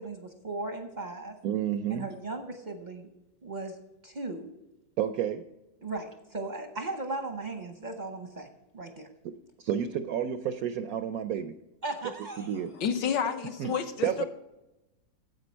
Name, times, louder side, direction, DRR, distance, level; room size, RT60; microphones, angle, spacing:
voice 1, 0.0-1.3 1.9-3.1 3.4-3.8 4.0-4.5 5.8-8.5 8.7-9.1 11.8-12.6, right 2 dB, 50° right, 0.5 m, -37 dB
voice 2, 1.4-2.1 5.0-5.4 9.6-11.5 12.4-12.7 13.6-13.7 14.0-14.2, right 9 dB, 75° right, 0.8 m, -30 dB
voice 3, 12.7-14.2, left 7 dB, 75° left, 1.6 m, -30 dB
10.5 x 7.8 x 4.4 m
omnidirectional pair, 2.0 m